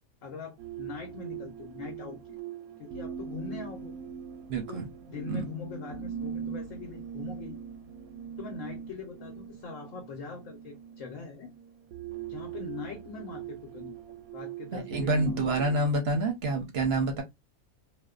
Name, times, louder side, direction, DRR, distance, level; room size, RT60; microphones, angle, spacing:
voice 1, 0.2-2.4 2.8-4.0 4.7-7.6 8.4-11.5 12.3-15.4, left 5 dB, 70° left, 1.0 m, -42 dB
sound 1, 0.6-15.9, right 8 dB, 85° right, 1.0 m, -41 dB
voice 2, 4.5-4.9 5.3-5.4 14.7-17.2, right 2 dB, 60° right, 0.7 m, -27 dB
2.6 x 2.2 x 2.2 m
omnidirectional pair, 1.5 m